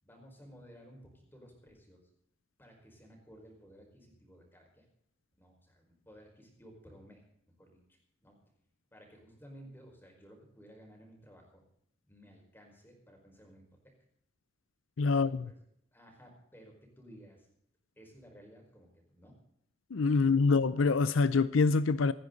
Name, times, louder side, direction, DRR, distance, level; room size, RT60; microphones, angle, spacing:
voice 1, 0.0-2.0 2.6-4.9 5.4-7.3 7.6-8.4 8.9-11.6 12.1-13.9 15.0-15.6 15.9-17.5 18.0-19.4 20.1-20.5, equal, 10° left, 5.0 m, -56 dB
voice 2, 15.0-15.5 19.9-22.1, left 4 dB, 80° left, 0.6 m, -26 dB
27.0 x 10.5 x 4.0 m
head